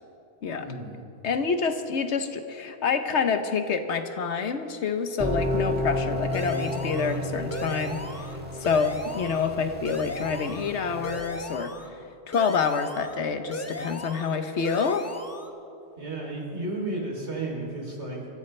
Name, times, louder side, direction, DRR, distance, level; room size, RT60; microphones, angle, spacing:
voice 1, 0.6-1.0 16.0-18.3, right 2 dB, 80° right, -2 dB, 3.6 m, -33 dB
voice 2, 1.2-8.3 8.6-11.7 12.3-15.1, left 5 dB, 80° left, 8 dB, 1.2 m, -27 dB
sound 1, 5.2-11.2, left 1 dB, 10° right, 1.5 m, -32 dB
sound 2, 6.3-7.2 7.5-8.4 8.6-9.5 9.8-10.7 11.0-11.9 12.3-13.2 13.5-14.4 14.6-15.5, left 2 dB, 15° left, 0.7 m, -37 dB
24.5 x 14.0 x 3.3 m, 2.6 s
omnidirectional pair, 1.1 m